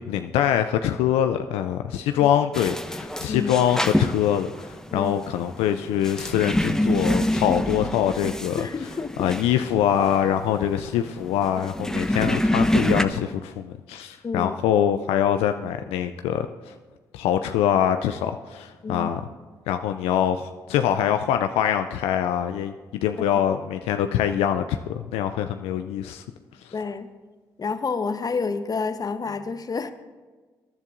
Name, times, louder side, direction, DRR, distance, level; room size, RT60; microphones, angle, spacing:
voice 1, 0.0-8.7 9.2-16.7 17.1-19.2 19.7-22.7 23.0-26.2 26.6-26.7, left 10 dB, 80° left, 8 dB, 0.4 m, -24 dB
sound 1, 2.5-13.0, left 1 dB, 5° left, 0.7 m, -26 dB
voice 2, 8.6-9.3 14.2-14.5 18.8-19.1 26.7-27.1 27.6-29.9, left 4 dB, 40° left, 10 dB, 0.9 m, -29 dB
21.0 x 10.5 x 2.6 m, 1.4 s
hypercardioid pair, 45°, 10 cm